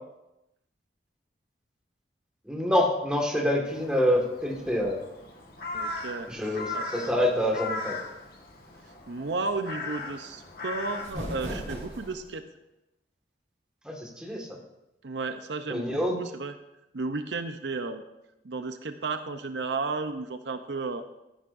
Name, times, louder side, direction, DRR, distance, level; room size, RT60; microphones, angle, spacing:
voice 1, 2.4-5.0 6.3-7.9 13.8-14.6 15.7-16.1, left 1 dB, 5° right, -1 dB, 1.7 m, -26 dB
Crow, 3.7-12.1, left 3 dB, 55° left, 1.5 m, -39 dB
voice 2, 5.7-6.8 9.1-12.4 15.0-16.5 16.9-18.0 18.4-21.0, right 3 dB, 75° right, 8 dB, 0.7 m, -33 dB
sound 1, 10.7-12.4, equal, 45° right, 4.3 m, -37 dB
14.5 x 10.0 x 2.6 m, 0.91 s
head